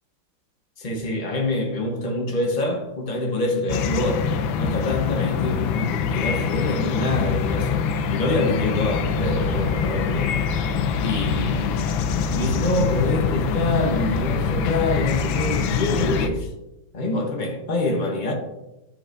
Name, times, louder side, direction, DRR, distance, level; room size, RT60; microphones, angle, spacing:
voice 1, 0.8-4.3 4.5-10.4 11.0-11.8 12.3-16.5 16.9-18.3, left 1 dB, 35° left, 0.7 m, -26 dB
sound 1, 3.7-16.3, left 6 dB, 80° left, 1.4 m, -24 dB
sound 2, 8.7-16.5, left 1 dB, 50° right, 2.0 m, -34 dB
sound 3, 9.1-11.6, right 1 dB, 70° right, 1.6 m, -43 dB
10.0 x 5.2 x 2.6 m
omnidirectional pair, 2.1 m